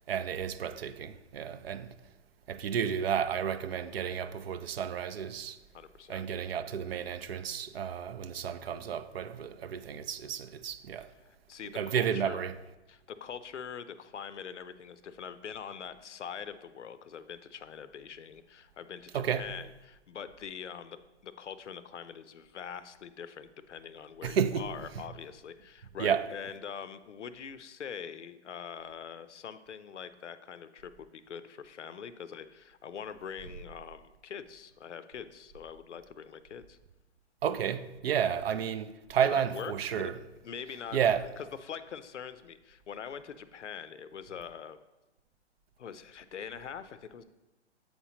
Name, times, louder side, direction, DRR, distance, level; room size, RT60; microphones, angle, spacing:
voice 1, 0.1-1.9 2.5-5.6 6.1-11.1 11.7-12.5 19.1-19.5 24.2-24.7 26.0-26.3 37.4-40.2 40.9-41.3, right 8 dB, 60° right, 0.5 m, -31 dB
voice 2, 5.7-6.3 11.2-12.4 12.9-21.0 21.2-36.8 39.3-40.1 40.4-41.0 41.4-44.8 45.8-47.2, left 7 dB, 90° left, 0.6 m, -43 dB
7.9 x 4.4 x 2.8 m
hypercardioid pair, 135°, 35 cm